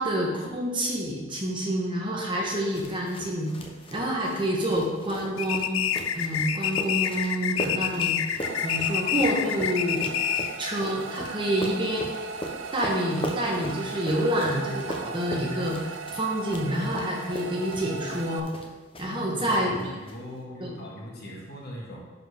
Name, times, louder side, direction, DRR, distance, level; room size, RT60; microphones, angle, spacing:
voice 1, 0.0-3.5 3.9-5.8 6.1-10.1 10.6-12.1 12.7-18.5 19.0-19.9 20.6-20.8, equal, 25° right, -2 dB, 1.1 m, -28 dB
sound 1, 2.4-19.2 19.5-20.1, equal, 25° left, 0.8 m, -39 dB
sound 2, 5.4-10.6, left 9 dB, 80° left, 0.4 m, -27 dB
sound 3, 8.4-18.4, right 6 dB, 65° right, 0.4 m, -38 dB
voice 2, 19.0-19.6 19.9-22.0, left 1 dB, 50° left, -3 dB, 1.8 m, -40 dB
11.0 x 4.6 x 3.5 m, 1.3 s
head